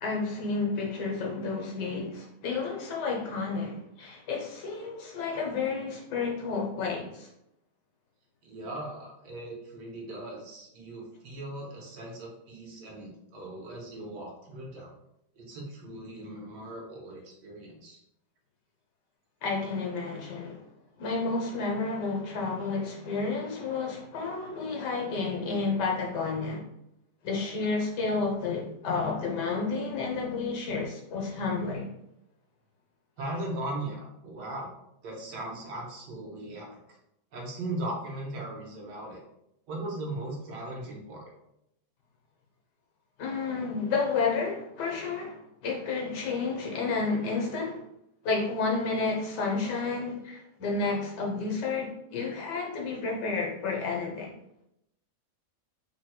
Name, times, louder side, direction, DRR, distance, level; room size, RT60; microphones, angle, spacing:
voice 1, 0.0-7.3 19.4-20.7 21.0-26.6 27.2-31.9 43.2-47.8 48.2-54.3, left 4 dB, 85° left, 1.5 m, -31 dB
voice 2, 8.4-14.9 15.4-18.0 33.2-34.7 35.0-37.0 37.3-39.2 39.7-41.3, right 1 dB, 90° right, 1.6 m, -38 dB
3.9 x 2.2 x 4.2 m
omnidirectional pair, 1.8 m